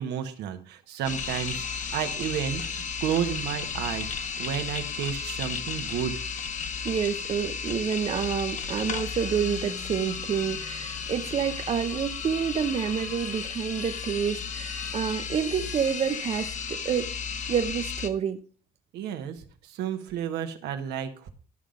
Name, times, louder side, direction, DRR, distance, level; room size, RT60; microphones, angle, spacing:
voice 1, 0.0-6.1 11.0-11.1 18.9-21.3, right 9 dB, 80° right, 1.4 m, -32 dB
sound 1, 1.0-18.1, left 6 dB, 45° left, 1.1 m, -34 dB
voice 2, 6.8-17.1 17.5-18.4, right 7 dB, 40° right, 0.6 m, -28 dB
11.0 x 5.6 x 5.2 m
cardioid pair, 110°, 17 cm